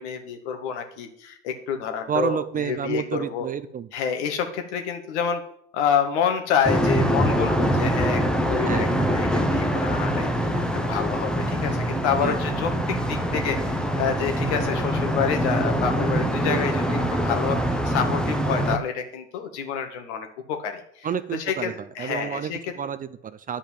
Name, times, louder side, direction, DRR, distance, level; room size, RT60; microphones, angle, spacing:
voice 1, 0.0-3.5 3.9-5.4 5.7-8.9 9.1-22.6, left 7 dB, 70° left, 5 dB, 2.0 m, -28 dB
voice 2, 2.1-3.9 8.6-8.9 12.2-12.4 16.4-16.6 21.0-21.7 22.0-23.6, right 8 dB, 25° right, 13 dB, 0.5 m, -29 dB
sound 1, 6.6-18.8, equal, ahead, 0.9 m, -24 dB
10.0 x 5.4 x 7.3 m, 0.68 s
hypercardioid pair, 95°, 35 cm